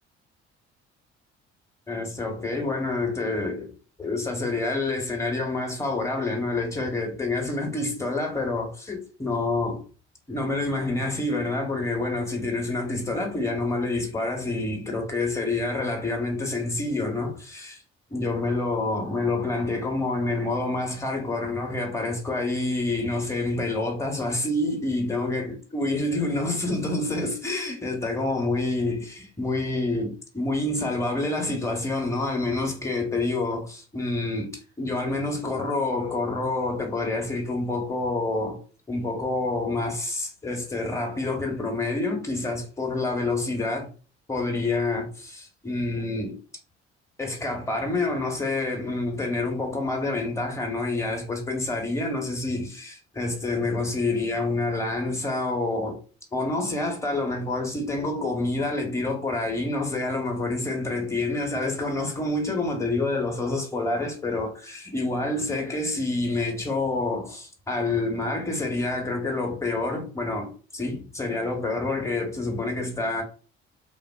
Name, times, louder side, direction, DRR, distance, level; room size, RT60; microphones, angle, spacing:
voice 1, 1.9-3.7 4.0-9.8 10.3-17.8 18.1-38.6 38.9-43.9 44.3-46.4 47.2-56.0 56.3-73.2, left 2 dB, 10° left, 1.2 m, -27 dB
3.6 x 2.5 x 2.4 m
figure-of-eight pair, 50°, 34 cm